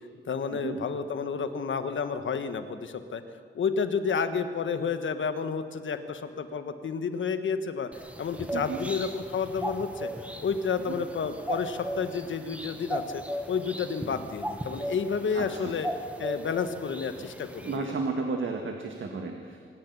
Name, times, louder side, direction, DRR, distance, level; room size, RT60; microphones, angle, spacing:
voice 1, 0.3-3.2 3.5-7.9 8.2-10.1 10.4-15.9 16.2-17.9, left 5 dB, 75° left, 10 dB, 1.3 m, -30 dB
sound 1, 7.9-17.8, equal, 5° right, 1.5 m, -37 dB
voice 2, 15.3-15.7 17.2-17.3 17.7-19.6, right 4 dB, 75° right, 3 dB, 1.8 m, -33 dB
25.5 x 11.0 x 9.6 m, 2.2 s
wide cardioid pair, 180°, 20 cm